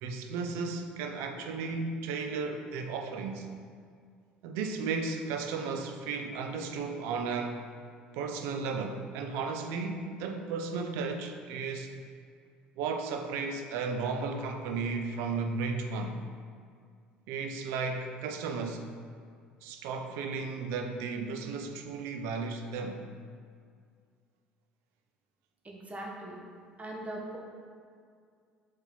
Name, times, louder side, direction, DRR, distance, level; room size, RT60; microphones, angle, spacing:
voice 1, 0.0-3.5 4.4-7.7 8.1-11.9 12.8-16.2 17.3-18.9 19.6-23.0, right 4 dB, 65° right, 5 dB, 0.6 m, -34 dB
voice 2, 25.6-26.4 26.8-27.4, right 1 dB, 30° right, -1 dB, 1.5 m, -40 dB
6.9 x 4.3 x 4.3 m, 2.2 s
hypercardioid pair, 60°, 5 cm